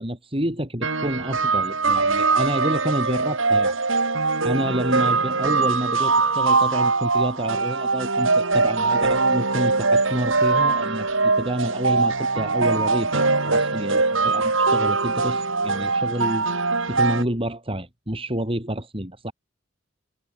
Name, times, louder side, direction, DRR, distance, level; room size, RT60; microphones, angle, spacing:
voice 1, 0.0-3.8 4.4-11.1 11.4-16.5 16.9-19.3, right 1 dB, 25° right, 7.4 m, -28 dB
sound 1, 0.8-17.2, right 3 dB, 70° right, 4.3 m, -22 dB
head